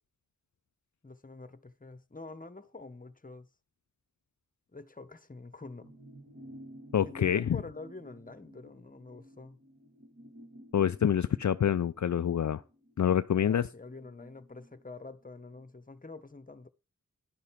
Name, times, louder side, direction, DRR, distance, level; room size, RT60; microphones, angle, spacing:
voice 1, 1.0-3.5 4.7-5.9 7.0-9.6 13.4-16.7, left 3 dB, 25° left, 1.1 m, -46 dB
sound 1, 5.8-15.6 16.0-16.1, equal, 35° right, 2.3 m, -54 dB
voice 2, 6.9-7.4 10.7-12.6 13.0-13.6, left 9 dB, 65° left, 0.5 m, -26 dB
10.5 x 6.5 x 5.7 m
cardioid pair, 45°, 31 cm